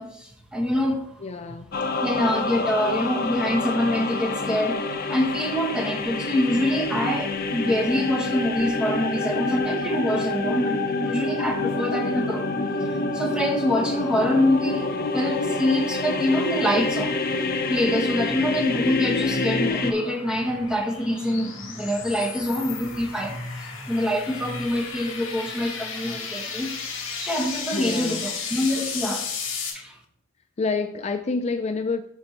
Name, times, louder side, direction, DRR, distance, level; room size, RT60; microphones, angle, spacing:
voice 1, 0.0-1.0 2.0-4.8 5.1-12.5 12.8-17.2 17.7-26.7 27.2-29.2 29.7-29.9, left 1 dB, 5° right, 1.3 m, -25 dB
voice 2, 1.2-1.7 21.8-21.9 27.7-28.2 30.6-32.0, left 4 dB, 35° left, 0.4 m, -28 dB
sound 1, 1.7-19.9, left 3 dB, 50° left, 0.8 m, -27 dB
sound 2, 18.5-29.7, left 5 dB, 65° left, 2.3 m, -35 dB
12.5 x 4.3 x 3.0 m
head